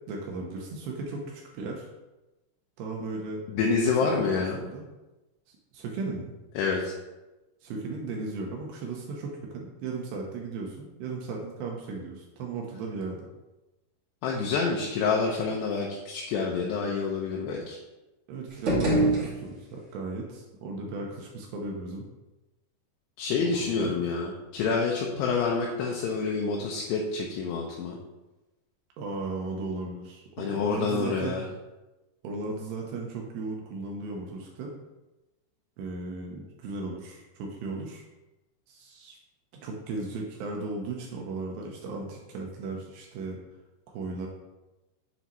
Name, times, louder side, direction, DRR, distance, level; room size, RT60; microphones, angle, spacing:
voice 1, 0.1-1.9 2.8-3.4 4.0-4.8 5.7-6.4 7.6-13.2 18.3-22.1 23.5-23.9 29.0-31.4 32.2-34.7 35.8-38.0 38.7-39.2 39.6-43.4 43.9-44.3, right 3 dB, 75° right, 0 dB, 2.9 m, -36 dB
voice 2, 3.5-4.6 6.5-6.9 14.2-17.8 23.2-28.0 30.4-31.4, left 5 dB, 80° left, -1 dB, 2.8 m, -28 dB
sound 1, 18.5-19.9, right 1 dB, 40° right, 1.9 m, -26 dB
8.0 x 7.1 x 3.1 m, 1.0 s
omnidirectional pair, 5.1 m